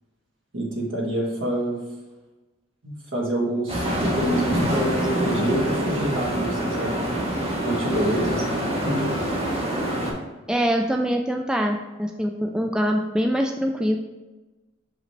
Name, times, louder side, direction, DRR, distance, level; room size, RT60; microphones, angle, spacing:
voice 1, 0.5-1.8 2.8-6.9 7.6-9.1, right 1 dB, 65° right, -2 dB, 1.7 m, -27 dB
sound 1, 3.7-10.1, right 1 dB, 30° right, 2.1 m, -25 dB
voice 2, 10.5-14.0, equal, 5° right, 2 dB, 0.3 m, -24 dB
6.2 x 4.9 x 3.3 m, 1.1 s
head